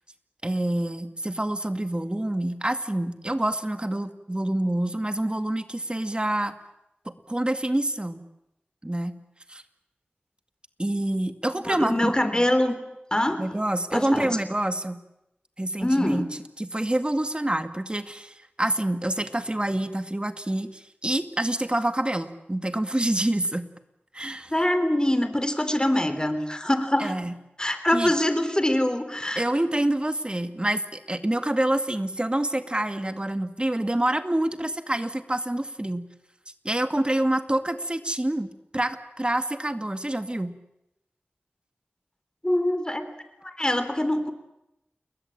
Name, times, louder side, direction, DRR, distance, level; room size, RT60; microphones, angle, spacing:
voice 1, 0.4-6.5 7.1-8.2 8.8-9.2 9.5-9.6 10.8-12.5 13.4-15.0 15.6-16.3 16.6-23.7 24.1-24.5 27.0-27.3 27.9-28.1 29.4-36.1 36.6-40.5, right 1 dB, 25° right, 8 dB, 2.2 m, -27 dB
voice 2, 11.7-12.7 13.1-13.4 13.9-14.3 15.8-16.3 24.5-27.1 27.6-29.4 42.4-43.1 43.4-44.3, left 1 dB, 20° left, 10 dB, 3.3 m, -24 dB
29.5 x 21.5 x 8.8 m, 0.87 s
wide cardioid pair, 50°, 4 cm